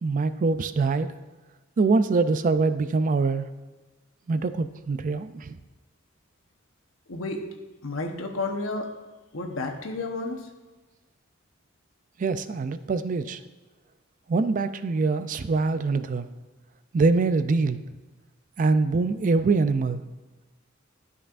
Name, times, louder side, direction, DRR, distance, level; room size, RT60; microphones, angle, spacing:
voice 1, 0.0-1.1 1.8-3.5 4.3-5.6 12.2-13.4 14.3-16.3 16.9-17.8 18.6-20.0, right 3 dB, 40° right, 12 dB, 0.4 m, -24 dB
voice 2, 7.1-7.4 7.8-8.9 9.3-10.5, left 2 dB, 90° left, 3 dB, 1.0 m, -31 dB
12.0 x 5.4 x 2.5 m, 1.2 s
head